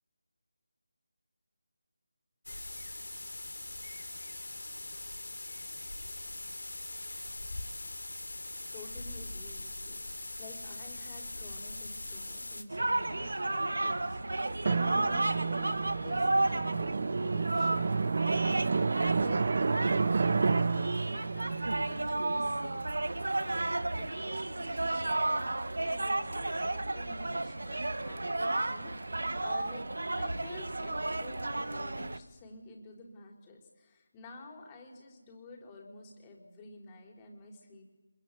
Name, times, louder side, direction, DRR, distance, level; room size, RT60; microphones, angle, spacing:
sound 1, 2.5-12.6, left 2 dB, 85° left, 3.0 m, -41 dB
voice 1, 8.7-23.6 23.9-29.9 30.2-37.8, left 2 dB, 15° left, 1 dB, 4.5 m, -50 dB
sound 2, 12.7-32.2, right 2 dB, 80° right, 1.6 m, -33 dB
Drum, 14.6-22.9, right 4 dB, 50° right, 0.8 m, -31 dB
26.0 x 22.5 x 8.6 m, 1.2 s
figure-of-eight pair, 165°, 0 cm